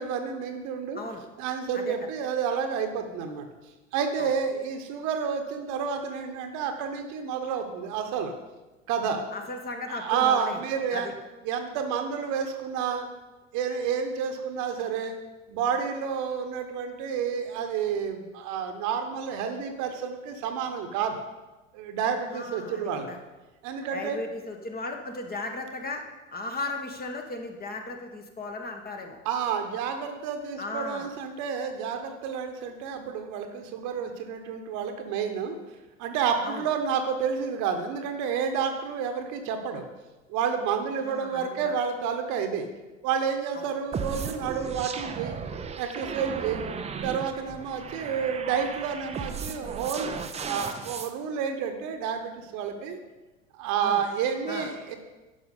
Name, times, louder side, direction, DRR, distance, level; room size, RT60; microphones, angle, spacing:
voice 1, 0.0-1.0 1.4-3.5 3.9-8.3 8.9-9.2 9.9-11.1 11.4-13.1 13.5-15.1 15.5-21.2 21.7-23.1 23.6-24.2 29.2-35.6 36.0-39.9 40.3-42.7 43.0-45.4 45.8-46.6 47.0-53.0 53.5-54.9, right 7 dB, 50° right, 5 dB, 1.3 m, -30 dB
voice 2, 9.3-10.6 10.9-11.1 22.3-23.2 23.9-26.0 26.3-29.2 30.6-31.1 36.4-36.7 41.0-41.7 43.5-43.7 53.8-54.0 54.5-54.7, left 2 dB, 25° left, 3 dB, 1.5 m, -36 dB
sound 1, 43.9-51.1, right 6 dB, 15° right, 0.7 m, -35 dB
10.5 x 6.1 x 5.4 m, 1.1 s
figure-of-eight pair, 75°, 38 cm